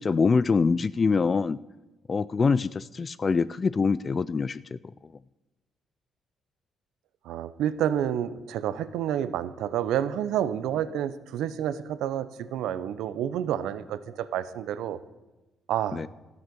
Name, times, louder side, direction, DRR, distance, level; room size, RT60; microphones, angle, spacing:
voice 1, 0.0-1.6 2.1-4.8 15.9-16.1, left 4 dB, 35° left, 17 dB, 0.3 m, -24 dB
voice 2, 7.2-15.0 15.7-16.0, right 10 dB, 85° right, 14 dB, 0.7 m, -29 dB
13.0 x 9.6 x 6.8 m, 1.1 s
cardioid pair, 90°, 0 cm